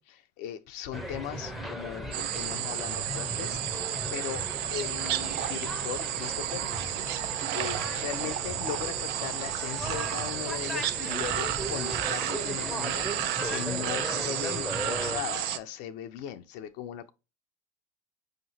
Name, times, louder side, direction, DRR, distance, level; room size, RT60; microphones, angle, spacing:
voice 1, 0.0-3.8 4.1-4.4 4.7-17.1, left 10 dB, 60° left, 0.5 m, -39 dB
sound 1, 0.9-15.2, equal, ahead, 0.7 m, -37 dB
sound 2, 2.1-15.6, right 12 dB, 60° right, 0.5 m, -32 dB
5.5 x 2.9 x 2.7 m
hypercardioid pair, 85°, 19 cm